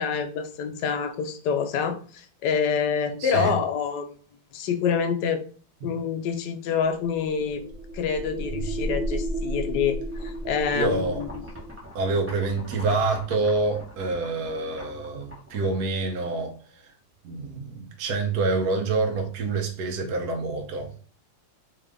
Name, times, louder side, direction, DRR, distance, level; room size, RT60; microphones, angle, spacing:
voice 1, 0.0-4.1 4.5-5.4 5.8-7.6 7.9-11.3, left 6 dB, 70° left, 6 dB, 1.1 m, -27 dB
voice 2, 3.2-3.6 5.8-5.9 10.7-11.3 11.9-16.8 17.2-20.9, right 3 dB, 65° right, 2 dB, 1.1 m, -27 dB
sound 1, 6.8-11.8, right 1 dB, 80° right, 1.6 m, -32 dB
sound 2, 10.1-16.2, left 1 dB, 10° right, 0.7 m, -45 dB
3.7 x 2.5 x 3.4 m, 0.41 s
omnidirectional pair, 2.1 m